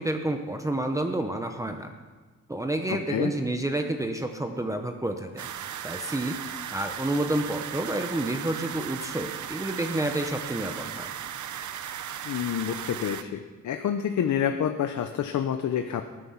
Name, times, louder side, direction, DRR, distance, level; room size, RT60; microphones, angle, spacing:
voice 1, 0.0-1.9 2.5-5.5 5.8-6.4 6.7-11.1, right 1 dB, 10° right, 5 dB, 0.8 m, -29 dB
sound 1, 5.4-13.2, right 9 dB, 85° right, 0.7 m, -36 dB
voice 2, 12.3-13.4 13.6-16.0, left 9 dB, 80° left, 7 dB, 0.8 m, -28 dB
19.0 x 9.8 x 5.7 m, 1.4 s
wide cardioid pair, 150°, 29 cm